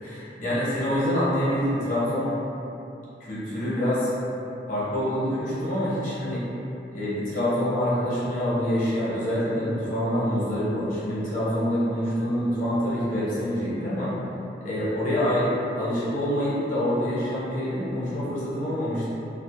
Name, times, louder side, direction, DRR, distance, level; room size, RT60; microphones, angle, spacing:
voice 1, 0.0-2.3 3.2-4.1 4.7-6.4 6.9-14.1 14.6-15.4 15.8-19.1, equal, 45° left, -10 dB, 0.8 m, -26 dB
3.0 x 2.1 x 2.7 m, 2.8 s
head